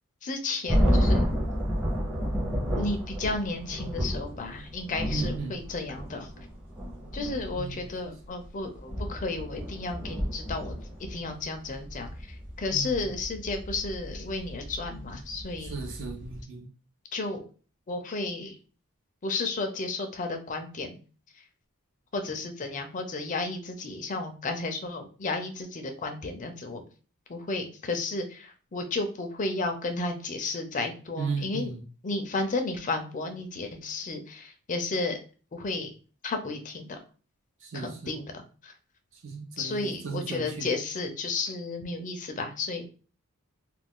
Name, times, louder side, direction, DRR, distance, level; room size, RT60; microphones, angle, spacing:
voice 1, 0.2-1.3 2.7-6.3 7.1-10.8 11.1-12.1 12.6-15.8 17.1-17.5 17.9-18.6 19.2-21.0 22.1-26.8 27.3-31.7 32.0-35.2 35.5-35.9 36.2-37.0 37.7-38.7 39.6-42.9, left 3 dB, 35° left, 5 dB, 0.4 m, -33 dB
sound 1, 0.7-16.4, equal, 5° right, 0.6 m, -31 dB
voice 2, 5.1-5.6 7.6-8.1 12.7-12.9 15.6-16.7 31.2-31.8 37.6-38.1 39.2-40.7, right 4 dB, 60° right, 2 dB, 0.6 m, -35 dB
2.4 x 2.2 x 3.6 m, 0.37 s
head